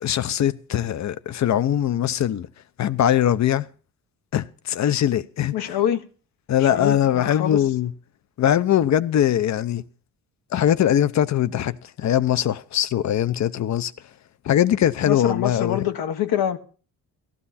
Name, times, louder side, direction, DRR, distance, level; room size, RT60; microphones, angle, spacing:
voice 1, 0.0-2.5 2.8-3.7 4.3-5.7 6.5-7.9 8.4-9.8 10.5-13.9 14.4-15.8, left 10 dB, 50° left, 0.8 m, -21 dB
voice 2, 5.5-6.0 6.6-7.6 15.1-16.6, left 10 dB, 80° left, 1.4 m, -25 dB
15.0 x 12.5 x 4.2 m
cardioid pair, 125°, 36 cm